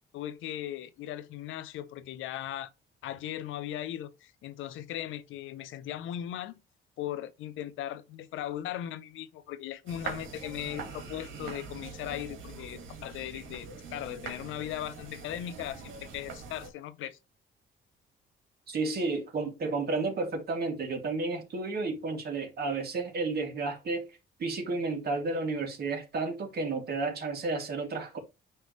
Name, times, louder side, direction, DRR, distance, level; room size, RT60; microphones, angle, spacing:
voice 1, 0.1-2.7 3.0-6.6 7.0-17.2, left 12 dB, 85° left, 0.7 m, -38 dB
sound 1, 9.9-16.7, right 4 dB, 80° right, 2.1 m, -43 dB
voice 2, 18.7-28.2, right 3 dB, 55° right, 2.6 m, -32 dB
9.6 x 3.4 x 3.2 m
cardioid pair, 90°, 20 cm